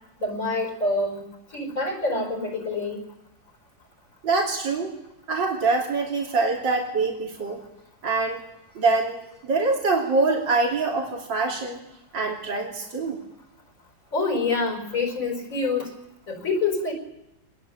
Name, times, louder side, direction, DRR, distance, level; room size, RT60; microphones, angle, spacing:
voice 1, 0.2-1.2 1.5-3.0 14.1-15.9 16.3-16.9, left 3 dB, 45° left, 4 dB, 5.4 m, -26 dB
voice 2, 4.2-4.9 5.3-7.6 8.0-8.4 8.8-11.8 12.1-13.2, right 3 dB, 85° right, -1 dB, 3.7 m, -24 dB
25.0 x 20.5 x 7.5 m, 0.91 s
omnidirectional pair, 2.0 m